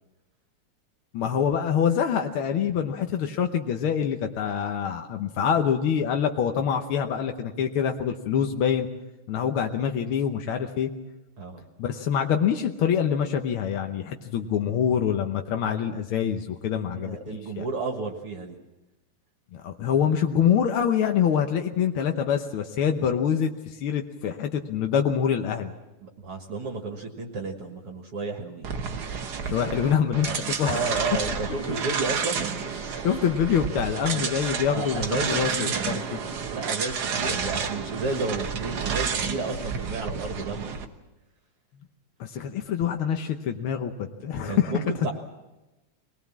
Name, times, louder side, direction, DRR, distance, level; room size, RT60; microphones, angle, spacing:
voice 1, 1.1-8.9 9.3-10.9 11.8-17.6 19.5-25.7 29.4-31.1 33.0-36.2 42.2-44.7, left 8 dB, 70° left, 4 dB, 1.3 m, -25 dB
voice 2, 16.7-18.6 26.0-28.7 30.7-32.4 34.1-34.3 34.7-36.1 36.5-40.7 44.4-45.1, right 3 dB, 50° right, 3 dB, 2.2 m, -32 dB
sound 1, 28.6-40.8, right 6 dB, 70° right, 0.9 m, -30 dB
23.5 x 19.5 x 7.3 m, 1.0 s
omnidirectional pair, 3.6 m